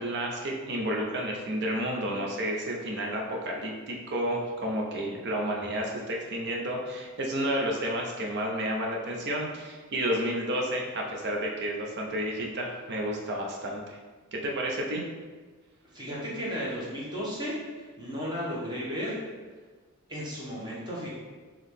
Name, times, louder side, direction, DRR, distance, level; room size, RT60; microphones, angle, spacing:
voice 1, 0.0-14.0 14.3-15.0, right 1 dB, 50° right, 0 dB, 0.7 m, -31 dB
voice 2, 15.9-19.1 20.1-21.1, equal, 20° right, -6 dB, 1.1 m, -34 dB
3.8 x 3.0 x 3.6 m, 1.4 s
head